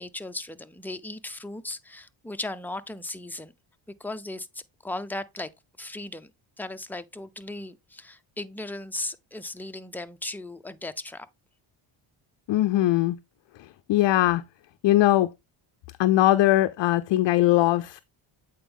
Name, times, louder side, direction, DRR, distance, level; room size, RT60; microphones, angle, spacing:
voice 1, 0.0-3.5 4.0-5.5 5.8-6.3 6.6-11.3, left 2 dB, 5° left, 0.6 m, -37 dB
voice 2, 12.5-13.2 13.9-14.4 14.8-15.3 16.0-18.0, left 15 dB, 60° left, 0.5 m, -20 dB
8.4 x 4.5 x 3.6 m
cardioid pair, 90°, 50 cm